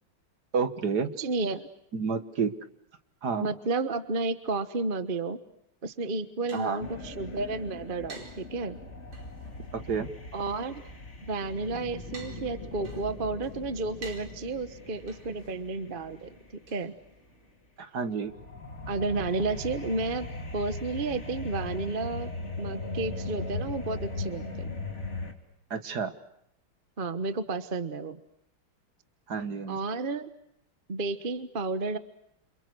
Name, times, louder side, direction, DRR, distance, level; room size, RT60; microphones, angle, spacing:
voice 1, 0.5-1.1 1.9-2.5 3.2-3.5 6.5-6.8 9.7-10.1 17.8-18.3 25.7-26.1 29.3-29.8, right 5 dB, 50° right, 11 dB, 2.0 m, -29 dB
voice 2, 1.2-1.7 3.4-5.4 5.8-8.8 10.3-10.8 11.3-16.4 16.7-16.9 18.9-20.3 20.5-22.3 22.6-24.8 27.0-28.2 29.7-30.3 30.9-32.0, right 3 dB, 30° right, 11 dB, 1.2 m, -32 dB
sound 1, 5.9-17.5, right 4 dB, 85° right, 5.4 m, -53 dB
sound 2, 6.8-16.7 18.2-25.3, left 2 dB, 30° left, 3.4 m, -39 dB
29.5 x 28.0 x 6.3 m, 0.75 s
omnidirectional pair, 2.3 m